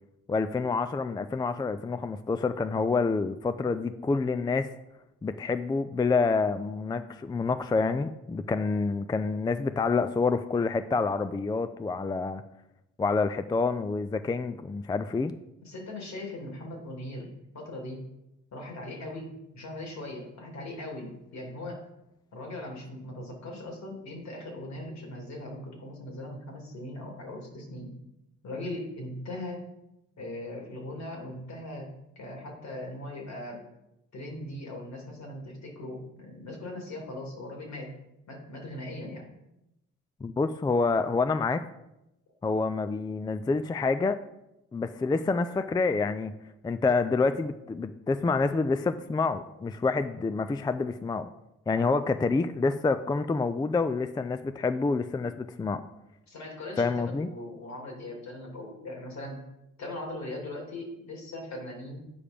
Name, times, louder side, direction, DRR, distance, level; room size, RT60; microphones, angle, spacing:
voice 1, 0.3-4.7 5.2-12.4 13.0-15.3 40.2-41.6 42.4-44.2 44.7-46.3 46.6-51.3 51.7-55.8 56.8-57.3, left 4 dB, 15° left, 11 dB, 0.3 m, -27 dB
voice 2, 15.6-18.0 18.5-21.9 22.3-27.9 28.4-29.7 30.2-31.9 32.2-33.6 34.1-37.9 38.3-39.3 56.3-59.4 59.8-62.0, left 1 dB, 65° left, 1 dB, 2.7 m, -39 dB
8.7 x 4.9 x 5.1 m, 0.89 s
cardioid pair, 90°, 30 cm